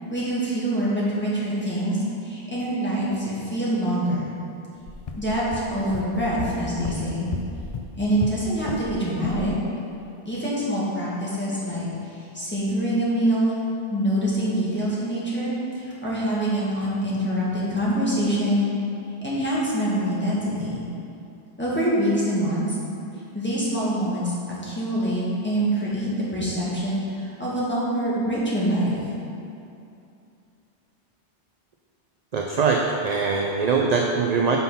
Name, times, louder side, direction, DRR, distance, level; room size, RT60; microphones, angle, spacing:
voice 1, 0.1-4.3 5.2-7.3 7.9-9.5 10.2-13.5 13.9-18.7 19.2-20.8 21.6-22.8 23.3-24.3 24.6-29.0, right 1 dB, 10° left, -9 dB, 1.8 m, -25 dB
sound 1, 4.8-8.9 9.2-9.5, left 4 dB, 65° left, 0.3 m, -34 dB
voice 2, 32.3-34.6, right 4 dB, 50° right, 0 dB, 0.5 m, -22 dB
5.8 x 5.7 x 5.6 m, 2.6 s
omnidirectional pair, 1.2 m